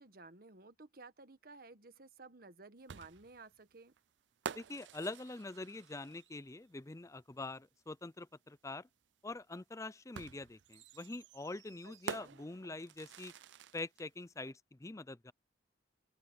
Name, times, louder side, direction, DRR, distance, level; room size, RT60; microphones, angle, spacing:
voice 1, 0.0-3.9 11.8-12.4, right 3 dB, 55° right, 1.3 m, -55 dB
sound 1, 2.9-6.5 8.0-8.1 10.1-14.1, right 7 dB, 80° right, 0.5 m, -48 dB
voice 2, 4.5-8.9 9.2-13.3 13.7-15.3, left 2 dB, 15° left, 0.5 m, -45 dB
open air
head